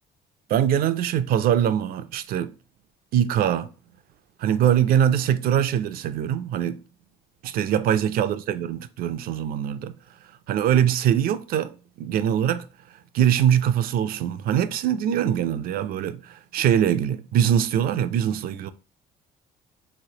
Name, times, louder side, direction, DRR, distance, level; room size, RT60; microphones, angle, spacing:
voice 1, 0.5-2.5 3.1-3.7 4.4-6.8 7.4-9.9 10.5-12.7 13.1-18.7, right 9 dB, 60° right, 0.4 m, -23 dB
3.2 x 3.1 x 2.7 m
cardioid pair, 110°, 17 cm